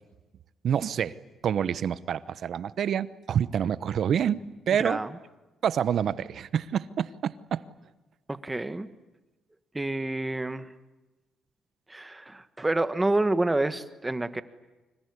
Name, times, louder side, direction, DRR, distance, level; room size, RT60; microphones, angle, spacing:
voice 1, 0.6-1.2 1.4-5.0 5.6-7.6, right 8 dB, 60° right, 16 dB, 1.0 m, -27 dB
voice 2, 8.3-8.9 9.7-10.7 11.9-14.4, right 2 dB, 15° right, 12 dB, 1.5 m, -28 dB
25.5 x 22.0 x 9.8 m, 1.1 s
cardioid pair, 90°, 0 cm